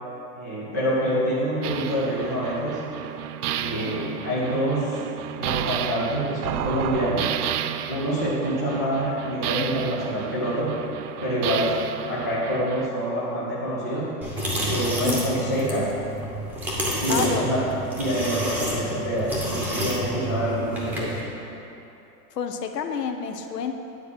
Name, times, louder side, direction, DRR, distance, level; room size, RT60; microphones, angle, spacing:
voice 1, 0.4-2.9 3.5-5.0 5.4-7.3 7.9-10.8 11.2-11.7 12.1-14.1 14.7-15.9 17.0-17.6 18.0-21.2, equal, 15° left, -10 dB, 0.3 m, -26 dB
sound 1, 1.6-12.9, right 11 dB, 70° right, 0.5 m, -32 dB
sound 2, 14.2-21.2, equal, 5° right, 0.8 m, -29 dB
voice 2, 17.1-17.6 22.3-23.7, left 7 dB, 90° left, 6 dB, 1.0 m, -29 dB
9.2 x 4.5 x 7.5 m, 2.9 s
hypercardioid pair, 160°, 47 cm